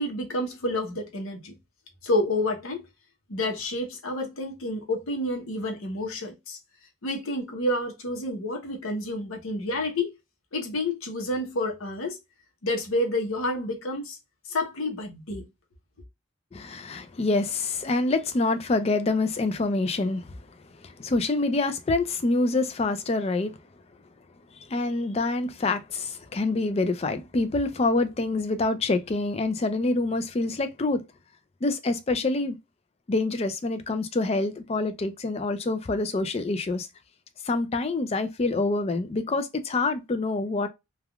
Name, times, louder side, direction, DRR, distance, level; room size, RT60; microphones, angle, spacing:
voice 1, 0.0-1.5 2.0-2.8 3.3-6.6 7.0-10.1 10.5-12.2 12.6-14.2 14.4-15.4, left 1 dB, 80° left, 0.9 m, -29 dB
voice 2, 16.5-20.4 20.8-23.5 24.6-31.0 31.6-32.6 33.1-36.9 37.4-40.7, left 2 dB, 30° left, 0.3 m, -26 dB
3.3 x 2.3 x 2.2 m
head